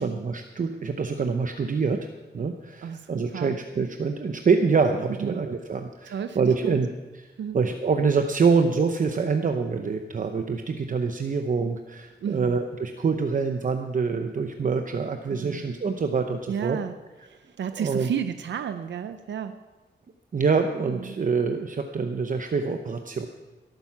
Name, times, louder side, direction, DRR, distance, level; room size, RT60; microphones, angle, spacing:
voice 1, 0.0-2.1 2.3-6.9 7.5-16.8 17.8-18.1 20.3-23.3, right 5 dB, 45° right, 6 dB, 0.8 m, -25 dB
voice 2, 2.8-3.6 5.2-5.4 6.1-6.8 7.4-7.6 12.2-12.6 15.3-15.6 16.5-16.9 17.2-19.6 20.9-21.2, right 8 dB, 90° right, 9 dB, 0.6 m, -32 dB
17.5 x 9.1 x 5.9 m, 1.2 s
wide cardioid pair, 125°, 18 cm